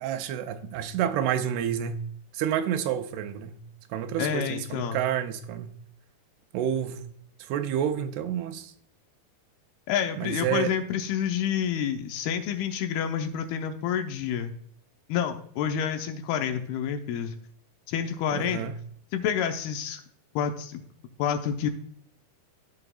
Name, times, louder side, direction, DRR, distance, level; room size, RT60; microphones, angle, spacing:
voice 1, 0.0-2.0 2.3-3.6 3.9-5.7 6.5-7.1 7.4-8.7 10.2-10.7 18.3-18.7, right 9 dB, 90° right, 2.7 m, -29 dB
voice 2, 4.2-5.0 9.9-14.5 15.1-17.3 17.9-18.7 19.1-20.0 20.4-20.8 21.2-21.7, left 8 dB, 85° left, 2.6 m, -28 dB
14.5 x 4.9 x 2.3 m
omnidirectional pair, 4.5 m